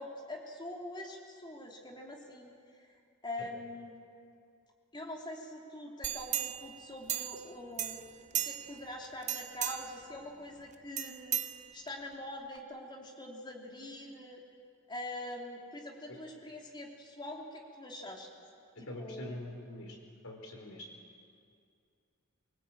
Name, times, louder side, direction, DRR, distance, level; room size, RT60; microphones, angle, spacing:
voice 1, 0.0-2.9 3.2-4.0 4.9-8.0 8.3-14.4 14.9-18.3 18.8-19.4, left 1 dB, 20° left, 0 dB, 3.2 m, -44 dB
sound 1, 6.0-7.5 7.8-8.8 9.2-10.0 11.0-12.1 12.5-12.6, right 10 dB, 35° right, 0.7 m, -36 dB
voice 2, 18.7-20.0 20.2-20.9, left 1 dB, 70° left, 1 dB, 4.7 m, -44 dB
24.5 x 20.0 x 8.8 m, 2.3 s
head